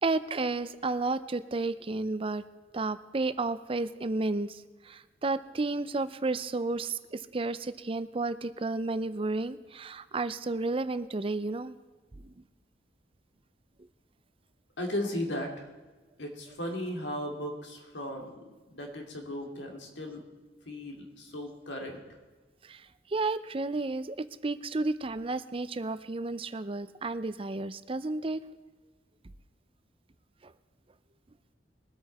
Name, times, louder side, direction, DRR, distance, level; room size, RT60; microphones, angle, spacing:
voice 1, 0.0-2.4 2.7-11.7 12.2-12.3 22.6-22.8 23.1-28.4 30.4-30.5, right 3 dB, 30° right, 14 dB, 0.5 m, -32 dB
voice 2, 14.8-15.7 16.2-20.2 20.7-22.0, left 1 dB, 85° left, 2 dB, 2.6 m, -36 dB
21.5 x 8.5 x 4.2 m, 1.3 s
head